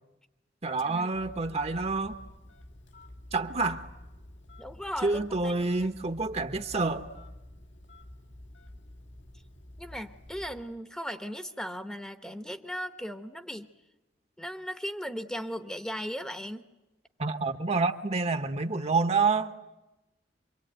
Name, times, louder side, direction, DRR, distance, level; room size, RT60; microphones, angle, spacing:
voice 1, 0.6-2.2 3.3-3.9 5.0-7.1 17.2-19.6, right 3 dB, 35° right, 1.1 m, -28 dB
Telephone, 1.1-10.8, left 1 dB, 75° left, 2.4 m, -49 dB
voice 2, 4.6-5.5 5.8-5.9 9.8-13.7 14.4-16.6, equal, 5° left, 1.0 m, -37 dB
26.0 x 23.5 x 9.1 m
head